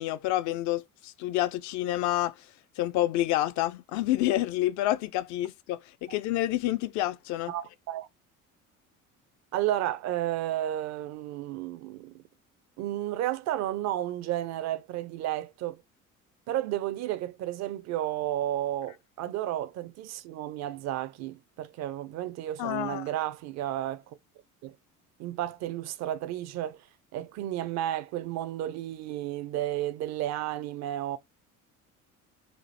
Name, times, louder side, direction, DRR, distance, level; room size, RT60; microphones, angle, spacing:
voice 1, 0.0-2.5 2.8-7.5 22.6-23.0, left 14 dB, 45° left, 0.4 m, -28 dB
voice 2, 7.5-8.1 9.5-12.2 12.8-15.8 16.5-24.2 24.6-24.7 25.2-26.9 27.1-31.2, right 13 dB, 40° right, 0.5 m, -32 dB
4.2 x 2.5 x 3.2 m
figure-of-eight pair, 60°, 43 cm